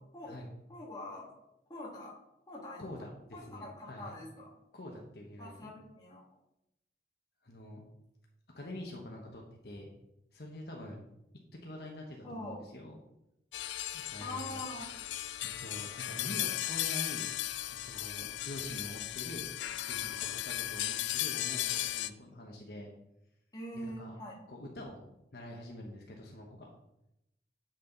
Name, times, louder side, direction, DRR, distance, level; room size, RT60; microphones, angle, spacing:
voice 1, 0.7-1.3 1.7-2.1 2.5-2.9 3.3-4.5 5.4-6.2 12.2-12.6 14.2-14.9 17.9-18.3 23.5-24.3, left 1 dB, 20° left, -5 dB, 2.2 m, -44 dB
voice 2, 2.8-4.2 4.7-5.7 7.4-7.8 8.5-9.9 10.3-11.0 11.6-13.0 13.9-14.6 15.6-17.3 17.8-19.4 19.9-22.9 23.7-24.1 24.5-25.0 25.3-26.7, left 1 dB, 60° left, -1 dB, 1.2 m, -45 dB
sound 1, 13.5-22.1, left 14 dB, 85° left, 0.4 m, -36 dB
7.9 x 6.5 x 4.0 m, 0.85 s
head